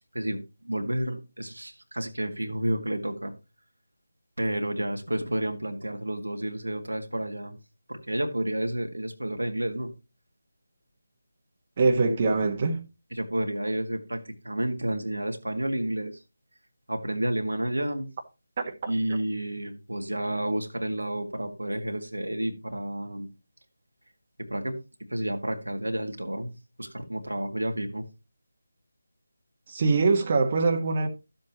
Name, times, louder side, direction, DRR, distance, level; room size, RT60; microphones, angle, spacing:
voice 1, 0.1-3.3 4.4-7.6 7.9-9.9 13.1-16.2 16.9-18.1 18.9-23.3 24.4-24.8 25.1-26.5 26.8-28.1, right 1 dB, 85° right, 2.1 m, -30 dB
voice 2, 11.8-12.8 18.6-18.9 29.7-31.1, right 3 dB, 35° right, 1.5 m, -23 dB
13.0 x 7.6 x 3.0 m
figure-of-eight pair, 160°, 0 cm